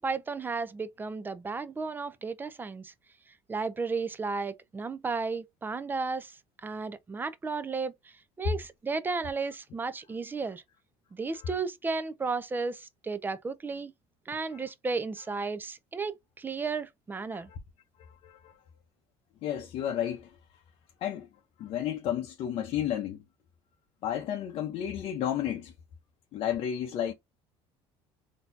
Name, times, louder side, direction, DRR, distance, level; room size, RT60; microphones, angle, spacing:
voice 1, 0.0-2.9 3.5-6.3 6.6-7.9 8.4-10.6 11.1-13.9 14.3-17.5, right 4 dB, 15° right, 0.5 m, -33 dB
voice 2, 18.2-18.5 19.4-20.3 21.0-21.3 21.6-23.2 24.0-25.7 26.3-27.1, left 10 dB, 50° left, 0.7 m, -32 dB
4.0 x 2.8 x 2.6 m
cardioid pair, 135°, 12 cm